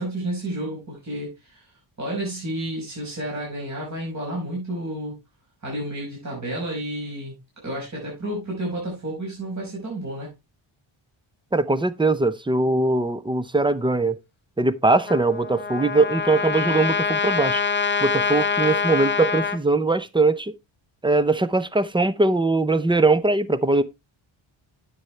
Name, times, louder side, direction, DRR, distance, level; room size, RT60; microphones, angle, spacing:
voice 1, 0.0-1.6 2.0-5.2 5.6-7.3 7.6-10.3, right 1 dB, 35° right, 5.6 m, -31 dB
voice 2, 11.5-14.2 14.6-17.6 18.0-20.5 21.0-23.8, right 3 dB, 10° right, 0.6 m, -21 dB
Trumpet, 15.1-19.6, left 5 dB, 20° left, 0.8 m, -25 dB
9.5 x 7.8 x 3.2 m
cardioid pair, 110°, 49 cm